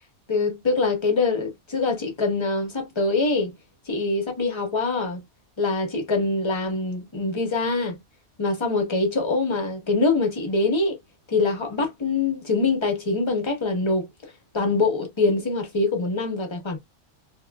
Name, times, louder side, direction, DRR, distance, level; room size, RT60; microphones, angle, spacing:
voice 1, 0.3-3.5 3.9-5.2 5.6-8.0 8.4-11.0 11.3-14.1 14.5-16.8, left 3 dB, 30° left, 0.6 m, -24 dB
2.7 x 2.3 x 2.2 m
omnidirectional pair, 1.5 m